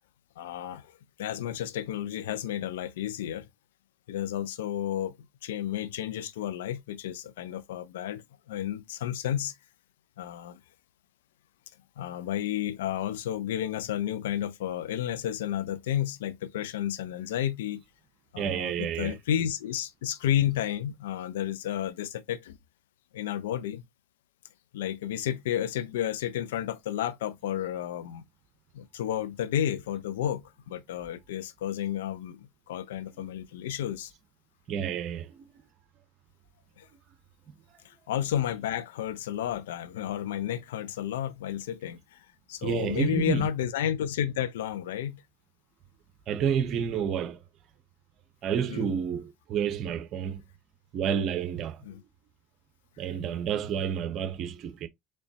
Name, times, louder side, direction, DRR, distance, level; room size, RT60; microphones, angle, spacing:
voice 1, 0.4-3.5 4.1-5.2 5.4-9.5 10.2-10.6 12.0-17.8 18.3-22.6 23.1-23.8 24.7-28.2 28.7-34.1 36.8-36.9 37.8-45.2 48.7-48.9 51.9-52.0, left 10 dB, 85° left, 0.4 m, -32 dB
voice 2, 18.4-19.2 33.2-33.3 34.7-35.5 42.6-43.5 46.3-47.4 48.4-50.4 50.9-51.8 53.0-54.9, right 8 dB, 50° right, 0.8 m, -30 dB
4.2 x 3.1 x 2.7 m
hypercardioid pair, 85°, 0 cm